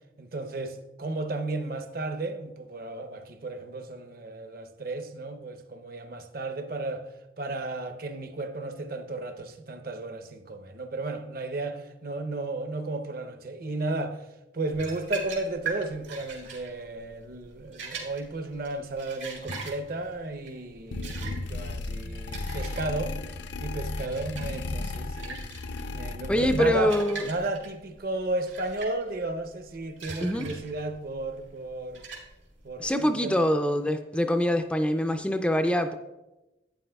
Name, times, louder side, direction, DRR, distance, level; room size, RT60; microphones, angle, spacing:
voice 1, 0.2-7.1 7.4-14.3 14.5-23.2 23.6-25.4 25.9-32.1 32.6-33.4, right 2 dB, 55° right, 0.7 m, -34 dB
sound 1, 14.7-32.9, right 4 dB, 85° right, 2.2 m, -41 dB
sound 2, 20.9-27.0, left 2 dB, 65° left, 0.5 m, -35 dB
voice 2, 26.3-27.2 30.2-30.5 32.8-35.9, equal, 5° left, 0.3 m, -24 dB
11.5 x 9.2 x 2.3 m
head